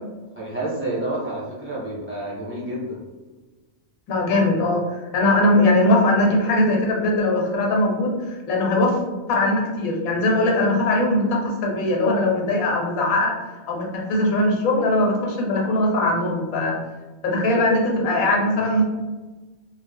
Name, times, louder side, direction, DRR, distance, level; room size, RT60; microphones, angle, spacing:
voice 1, 0.3-3.0, right 1 dB, 10° right, -8 dB, 0.9 m, -29 dB
voice 2, 4.1-9.0 9.3-13.3 13.7-16.8 17.2-18.8, left 1 dB, 90° left, -1 dB, 1.1 m, -20 dB
2.4 x 2.0 x 3.4 m, 1.2 s
omnidirectional pair, 1.5 m